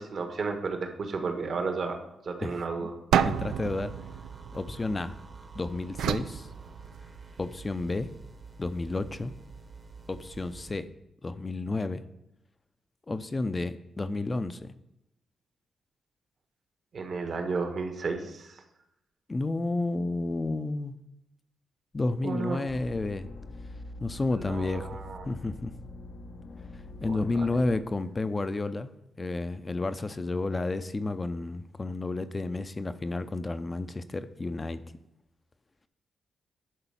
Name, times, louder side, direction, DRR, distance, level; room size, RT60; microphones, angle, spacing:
voice 1, 0.0-2.0 2.2-2.9 16.9-18.6 22.2-22.6 24.5-25.2 27.0-27.5, right 4 dB, 60° right, 5 dB, 1.4 m, -33 dB
voice 2, 2.4-2.9 3.2-3.9 4.5-5.2 5.5-6.5 7.4-8.1 8.6-9.3 10.1-10.9 11.2-12.0 13.1-14.7 19.3-21.0 21.9-23.3 24.0-25.7 27.0-28.9 29.2-34.8, left 2 dB, 30° left, 12 dB, 0.6 m, -31 dB
sound 1, 3.1-5.3 6.0-7.4, right 9 dB, 90° right, 0.3 m, -30 dB
sound 2, 3.3-10.8, right 4 dB, 40° right, 1.1 m, -48 dB
sound 3, 22.7-27.8, left 2 dB, 70° left, 0.9 m, -44 dB
11.0 x 4.0 x 5.6 m, 0.88 s
cardioid pair, 75°, 0 cm